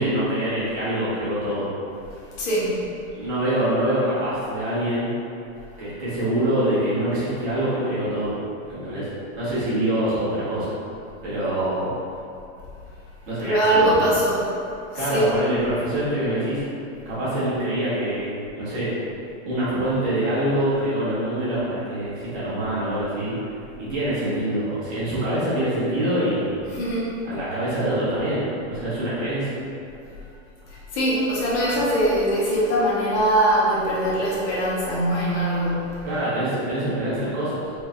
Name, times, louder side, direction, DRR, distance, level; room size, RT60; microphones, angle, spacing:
voice 1, 0.0-1.7 3.1-5.1 5.8-8.3 8.7-9.1 9.4-10.7 11.2-11.9 13.3-13.9 14.9-16.6 17.0-18.9 19.4-23.3 23.8-26.6 27.2-29.6 36.0-37.6, right 1 dB, 40° right, -10 dB, 1.4 m, -25 dB
voice 2, 2.1-2.8 13.4-14.5 14.9-15.3 26.7-27.2 30.7-36.1, right 1 dB, 55° left, -8 dB, 1.1 m, -22 dB
4.4 x 2.8 x 2.4 m, 2.6 s
supercardioid pair, 170°, 41 cm